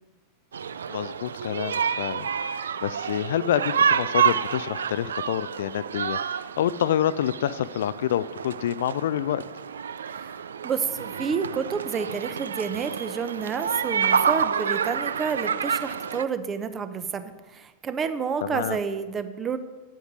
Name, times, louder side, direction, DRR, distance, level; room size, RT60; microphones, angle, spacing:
sound 1, 0.5-16.2, right 7 dB, 70° right, 0.4 m, -28 dB
voice 1, 0.9-9.4 18.4-18.8, left 11 dB, 60° left, 17 dB, 0.3 m, -27 dB
voice 2, 10.1-19.6, right 6 dB, 25° right, 11 dB, 0.8 m, -30 dB
9.4 x 8.1 x 6.2 m, 1.2 s
figure-of-eight pair, 90°, 0 cm